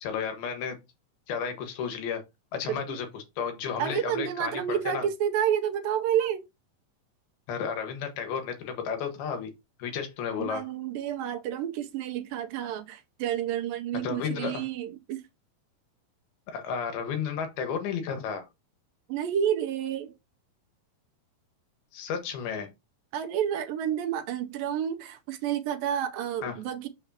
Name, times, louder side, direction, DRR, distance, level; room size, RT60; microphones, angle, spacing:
voice 1, 0.0-0.8 1.3-2.2 2.5-5.1 7.5-9.5 9.8-10.6 14.0-14.6 16.5-18.5 21.9-22.7 26.4-26.5, left 6 dB, 85° left, 3.4 m, -32 dB
voice 2, 2.7-3.0 3.8-6.5 10.4-15.2 19.1-20.1 23.1-26.9, right 9 dB, 80° right, 2.4 m, -30 dB
7.0 x 6.8 x 2.8 m
omnidirectional pair, 4.3 m